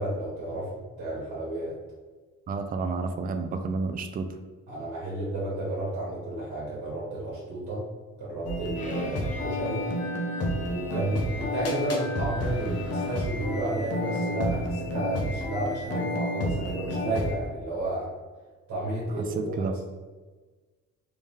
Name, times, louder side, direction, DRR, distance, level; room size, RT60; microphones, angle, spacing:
voice 1, 0.0-1.7 4.7-7.8 8.2-9.8 10.6-18.1 18.7-19.8, right 1 dB, 75° right, -6 dB, 1.3 m, -32 dB
voice 2, 2.5-4.3 19.1-19.7, right 4 dB, 30° right, 7 dB, 0.4 m, -30 dB
sound 1, 8.4-17.3, equal, 55° left, 0.9 m, -30 dB
Bowed string instrument, 8.7-13.4, left 4 dB, 25° left, 0.6 m, -47 dB
3.5 x 2.6 x 3.5 m, 1.3 s
cardioid pair, 90°, 30 cm